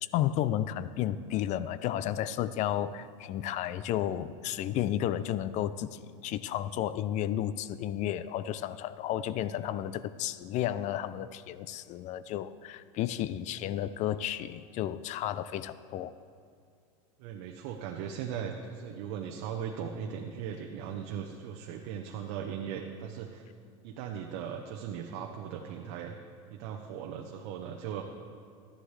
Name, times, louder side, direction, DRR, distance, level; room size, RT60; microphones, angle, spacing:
voice 1, 0.1-16.1, left 12 dB, 45° left, 15 dB, 0.4 m, -32 dB
voice 2, 17.2-23.4 23.8-26.1 26.5-28.0, right 8 dB, 65° right, 2 dB, 0.9 m, -38 dB
13.0 x 10.5 x 3.3 m, 2.3 s
supercardioid pair, 120°, 18 cm